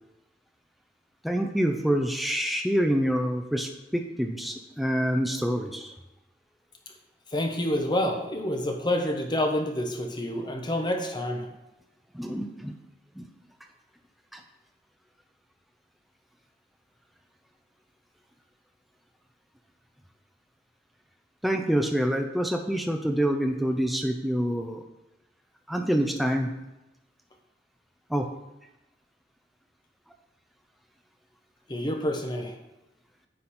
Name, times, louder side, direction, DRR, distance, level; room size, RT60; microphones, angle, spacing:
voice 1, 1.2-5.9 12.1-12.7 13.2-13.3 14.3-14.4 21.4-24.8 25.7-26.5 28.1-28.3, equal, ahead, 4 dB, 0.5 m, -26 dB
voice 2, 7.3-11.5 31.7-32.6, left 1 dB, 25° left, 3 dB, 1.0 m, -28 dB
9.6 x 4.1 x 4.3 m, 0.97 s
head